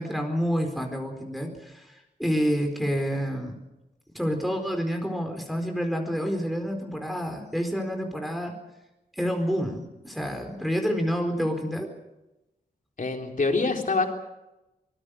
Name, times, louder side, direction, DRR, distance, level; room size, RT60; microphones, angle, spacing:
voice 1, 0.0-3.6 4.1-8.5 9.2-11.9, equal, ahead, 3 dB, 4.4 m, -28 dB
voice 2, 13.0-14.1, left 3 dB, 55° left, 2 dB, 3.6 m, -25 dB
25.0 x 20.0 x 6.6 m, 0.96 s
wide cardioid pair, 115°, 17 cm